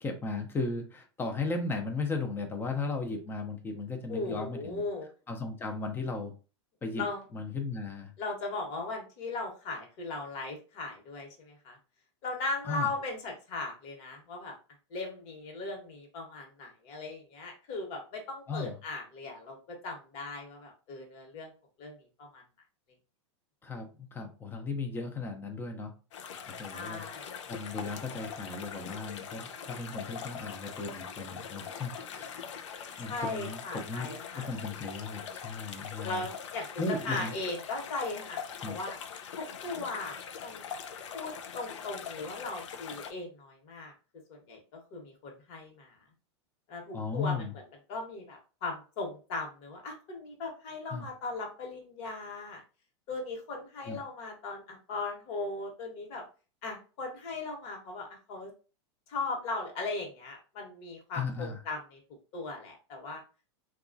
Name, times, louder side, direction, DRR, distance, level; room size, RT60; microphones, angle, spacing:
voice 1, 0.0-4.8 5.3-6.3 6.8-7.0 7.3-8.1 12.6-12.9 18.5-18.8 23.6-25.9 26.2-27.0 27.5-32.6 33.0-36.3 36.8-37.3 38.6-38.8 46.9-47.5 50.9-51.1 53.9-54.0 61.1-61.6, left 3 dB, 15° left, 4 dB, 0.5 m, -36 dB
voice 2, 4.1-5.1 7.0-7.2 8.2-11.8 12.2-14.5 14.9-21.5 21.8-22.4 26.7-27.4 33.0-34.5 36.0-39.0 39.4-40.6 41.1-43.9 44.3-46.0 46.7-47.4 47.9-52.6 53.1-56.2 56.6-58.5 59.1-62.0 62.3-63.2, left 3 dB, 50° left, 1 dB, 1.2 m, -38 dB
sound 1, 26.1-43.1, left 7 dB, 85° left, 0.5 m, -42 dB
2.9 x 2.3 x 2.5 m, 0.34 s
hypercardioid pair, 130°, 15 cm